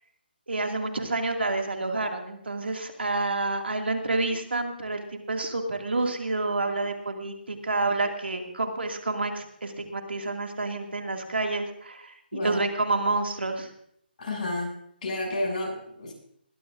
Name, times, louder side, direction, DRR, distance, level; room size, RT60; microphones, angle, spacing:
voice 1, 0.5-13.7, right 2 dB, 85° right, 4 dB, 2.3 m, -29 dB
voice 2, 14.2-14.7 15.0-16.1, left 1 dB, 45° left, -1 dB, 7.1 m, -30 dB
21.0 x 13.5 x 2.6 m, 0.70 s
figure-of-eight pair, 150°, 6 cm